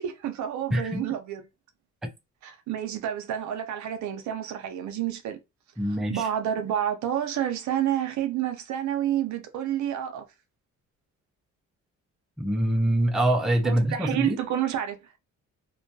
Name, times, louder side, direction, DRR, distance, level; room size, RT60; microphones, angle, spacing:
voice 1, 0.0-1.4 2.4-5.4 6.1-10.2 13.6-15.0, right 10 dB, 70° right, 0.6 m, -29 dB
voice 2, 0.7-1.1 2.0-2.1 5.8-6.3 12.4-14.4, right 1 dB, ahead, 0.4 m, -24 dB
2.2 x 2.1 x 2.6 m
cardioid pair, 90°, 30 cm